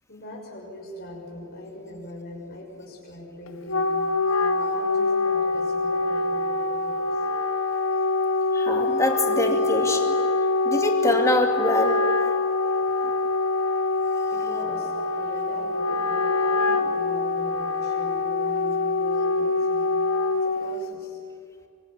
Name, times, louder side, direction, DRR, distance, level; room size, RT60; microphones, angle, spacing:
voice 1, 0.1-3.9 4.4-7.2 14.3-19.9 20.3-21.2, left 1 dB, 45° left, -2 dB, 6.1 m, -40 dB
Wind instrument woodwind instrument, 3.5-20.9, left 3 dB, 70° left, 1.5 m, -24 dB
voice 2, 8.5-10.2 10.6-12.0, left 1 dB, 15° left, 3 dB, 2.4 m, -24 dB
24.0 x 23.0 x 10.0 m, 2.6 s
head